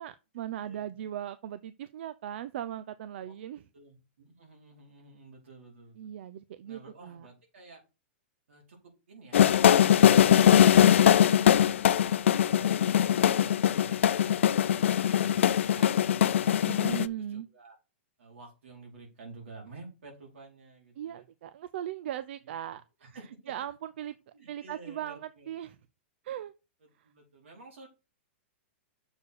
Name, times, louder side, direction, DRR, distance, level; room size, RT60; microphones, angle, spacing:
voice 1, 0.0-3.6 6.0-7.3 16.6-17.5 21.0-22.8 23.5-24.1 24.5-25.8 26.2-26.5, right 11 dB, 65° right, 0.6 m, -38 dB
voice 2, 0.6-1.1 3.2-3.4 3.7-6.0 6.6-7.8 8.5-11.3 11.6-11.8 12.2-16.7 17.2-17.7 18.2-21.2 22.4-23.5 24.3-25.5 26.8-27.9, right 3 dB, 90° right, 4.7 m, -51 dB
sound 1, 9.3-17.1, left 10 dB, 85° left, 0.5 m, -21 dB
6.9 x 4.6 x 6.5 m
hypercardioid pair, 145°, 7 cm